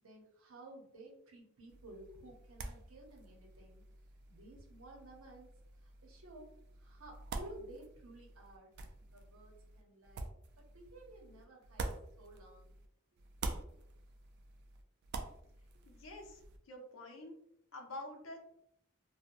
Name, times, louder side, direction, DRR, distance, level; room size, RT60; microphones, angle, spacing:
voice 1, 0.0-3.8 4.3-5.5 5.8-6.5 6.8-8.7 9.1-12.7 15.7-15.8, right 1 dB, 85° right, 0 dB, 0.8 m, -55 dB
sound 1, 1.7-12.9 13.2-16.6, right 3 dB, 55° right, 0.3 m, -47 dB
voice 2, 15.9-16.4 16.7-17.4 17.7-18.4, left 1 dB, 70° left, 1 dB, 0.6 m, -47 dB
2.8 x 2.1 x 2.5 m, 0.75 s
head